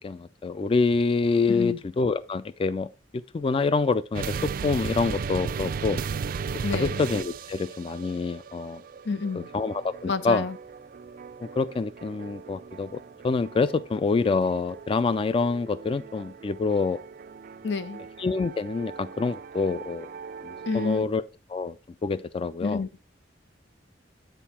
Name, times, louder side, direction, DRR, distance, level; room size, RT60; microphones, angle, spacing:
voice 1, 0.0-2.9 3.3-6.0 6.7-8.8 9.3-10.5 11.4-17.0 18.2-20.1 20.4-21.2 21.5-21.7 22.0-22.8, left 4 dB, 30° left, 0.3 m, -26 dB
voice 2, 1.5-1.8 6.6-7.0 9.0-9.5 10.0-10.6 17.6-18.0 20.7-21.0 22.6-22.9, left 4 dB, 90° left, 0.7 m, -29 dB
sound 1, 4.1-21.0, right 5 dB, 55° right, 0.4 m, -37 dB
9.1 x 4.6 x 4.2 m
head